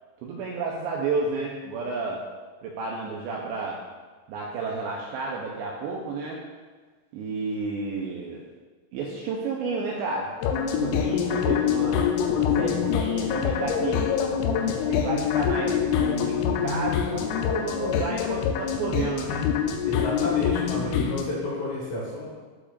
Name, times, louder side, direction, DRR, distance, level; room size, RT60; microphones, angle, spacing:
voice 1, 0.2-2.2 2.6-3.8 4.3-6.4 7.1-8.5 8.9-10.3 10.8-12.1 12.4-14.1 14.5-19.4, right 4 dB, 90° right, -2 dB, 2.5 m, -31 dB
sound 1, 10.4-21.2, left 8 dB, 85° left, 3.3 m, -25 dB
voice 2, 19.9-22.3, left 1 dB, 60° left, -6 dB, 2.5 m, -31 dB
14.0 x 5.0 x 2.5 m, 1.4 s
omnidirectional pair, 5.8 m